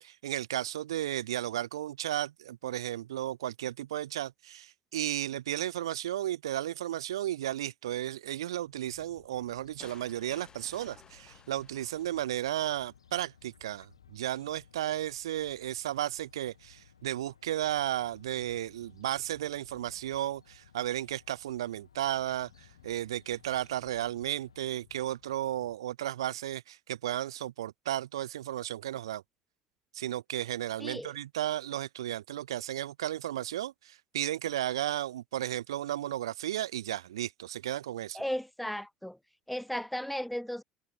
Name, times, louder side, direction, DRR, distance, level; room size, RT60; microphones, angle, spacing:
voice 1, 0.0-29.2 29.9-38.2, right 12 dB, 70° right, 0.5 m, -34 dB
sound 1, 8.5-25.8, left 19 dB, 65° left, 6.2 m, -64 dB
Fowl, 9.4-24.6, left 6 dB, 80° left, 2.9 m, -62 dB
sound 2, 9.8-12.8, left 6 dB, 30° left, 3.4 m, -57 dB
voice 2, 30.8-31.1 38.1-39.2 39.5-40.6, equal, ahead, 1.2 m, -35 dB
figure-of-eight pair, 60°, 3 cm